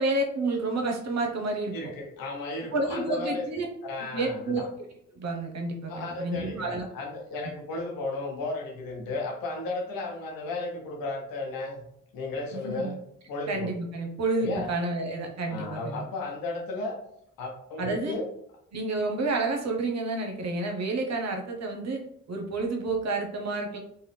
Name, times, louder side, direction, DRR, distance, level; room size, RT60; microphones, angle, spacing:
voice 1, 0.0-1.9 2.7-3.7 4.1-4.7 5.1-6.8 12.5-13.0 13.5-16.1 17.8-18.2 18.7-22.0 22.3-23.8, right 2 dB, 50° right, 3 dB, 0.8 m, -30 dB
voice 2, 1.7-3.5 3.8-4.7 5.9-11.8 12.1-12.9 13.3-13.7 14.4-14.7 15.5-17.0 17.4-18.3, left 2 dB, 80° left, 0 dB, 0.9 m, -34 dB
2.8 x 2.2 x 3.3 m, 0.72 s
hypercardioid pair, 40°, 34 cm